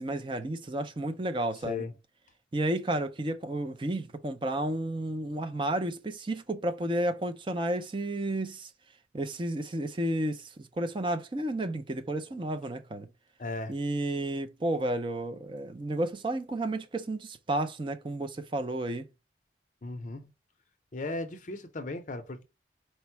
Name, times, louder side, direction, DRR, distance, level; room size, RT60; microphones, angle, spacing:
voice 1, 0.0-1.9 2.5-8.7 9.1-13.1 13.7-19.1, right 1 dB, 25° right, 0.5 m, -32 dB
voice 2, 1.6-1.9 13.4-13.7 19.8-20.3 20.9-22.4, left 2 dB, 45° left, 0.5 m, -36 dB
4.4 x 2.0 x 4.3 m
head